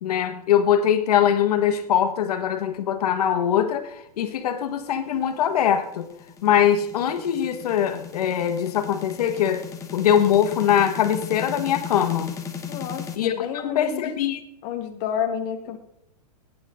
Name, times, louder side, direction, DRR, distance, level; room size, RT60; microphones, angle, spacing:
voice 1, 0.0-6.1 6.4-9.6 9.9-12.3 13.2-14.4, left 9 dB, 70° left, 7 dB, 1.7 m, -22 dB
sound 1, 5.1-13.2, left 7 dB, 15° left, 1.1 m, -37 dB
voice 2, 12.7-14.0 14.6-15.8, left 8 dB, 40° left, 4 dB, 1.2 m, -30 dB
17.5 x 9.7 x 3.8 m, 0.77 s
supercardioid pair, 150°, 20 cm